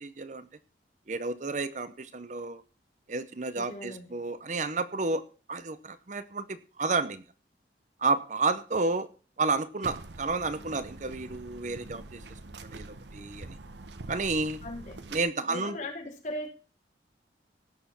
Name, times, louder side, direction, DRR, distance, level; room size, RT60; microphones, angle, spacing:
voice 1, 0.0-0.5 1.1-2.6 3.1-5.2 5.5-7.2 8.0-9.1 9.4-12.2 12.7-12.9 13.1-13.6 14.1-14.6 15.1-15.8, right 3 dB, 45° right, 13 dB, 0.7 m, -31 dB
voice 2, 3.5-4.1 14.6-15.0 15.5-16.5, left 1 dB, 45° left, -3 dB, 4.5 m, -38 dB
sound 1, 9.8-15.2, right 2 dB, 80° right, 1.1 m, -44 dB
17.0 x 6.8 x 5.9 m, 0.37 s
head